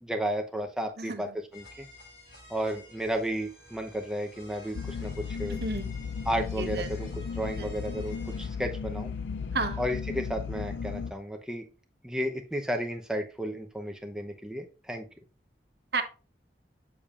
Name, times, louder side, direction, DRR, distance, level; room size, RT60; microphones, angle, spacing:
voice 1, 0.0-1.3 1.5-1.9 2.5-5.6 6.2-9.1 9.8-11.7 12.0-15.0, equal, 5° right, 3 dB, 0.8 m, -33 dB
sound 1, 1.5-8.5, left 1 dB, 75° left, 4.3 m, -52 dB
sound 2, 4.7-11.1, left 5 dB, 90° left, 0.5 m, -35 dB
voice 2, 5.5-5.9 6.6-6.9 7.6-7.7 9.5-9.8 15.9-16.0, right 3 dB, 70° right, 6 dB, 1.0 m, -31 dB
7.1 x 6.9 x 2.5 m, 0.33 s
head